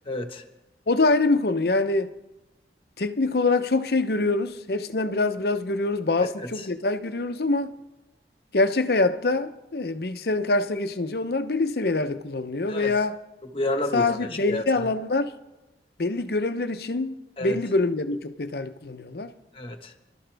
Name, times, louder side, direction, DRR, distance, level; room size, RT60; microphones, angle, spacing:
voice 1, 0.1-0.4 6.6-6.7 12.7-12.9 13.5-14.8 17.4-17.6 19.5-19.9, left 1 dB, 30° left, 1.4 m, -30 dB
voice 2, 0.9-2.1 3.0-7.7 8.5-13.2 13.9-15.3 16.0-19.3, left 3 dB, 60° left, 0.8 m, -25 dB
29.0 x 12.5 x 3.5 m
head